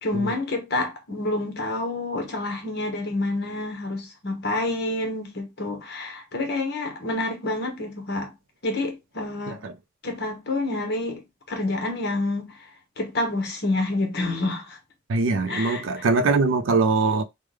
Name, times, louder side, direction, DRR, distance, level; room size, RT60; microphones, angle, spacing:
voice 1, 0.0-8.3 8.6-9.6 10.0-11.2 11.5-12.5 13.0-14.8 15.5-15.8, left 2 dB, 55° left, 1.1 m, -28 dB
voice 2, 15.1-17.2, right 3 dB, 85° right, 0.5 m, -22 dB
3.3 x 2.2 x 3.3 m
head